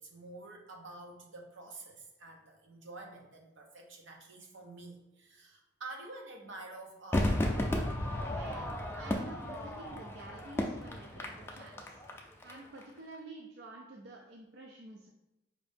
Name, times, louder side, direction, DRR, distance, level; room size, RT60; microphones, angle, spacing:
voice 1, 0.0-7.4, right 2 dB, 80° right, 1 dB, 0.8 m, -48 dB
Crowd / Fireworks, 7.1-12.5 12.8-12.9, left 1 dB, 10° left, 0.4 m, -34 dB
voice 2, 8.3-12.0 12.4-15.1, right 2 dB, 60° right, 0 dB, 0.4 m, -49 dB
5.0 x 2.7 x 3.4 m, 0.96 s
head